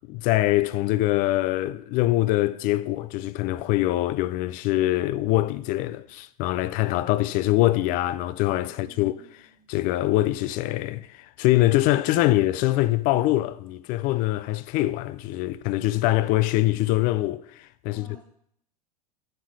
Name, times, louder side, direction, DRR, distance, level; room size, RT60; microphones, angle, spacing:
voice 1, 0.1-9.1 9.7-18.2, left 16 dB, 45° left, 0.4 m, -24 dB
voice 2, 8.7-9.7 17.9-18.2, equal, 5° left, 3.5 m, -54 dB
7.6 x 4.5 x 4.8 m
hypercardioid pair, 110°, 19 cm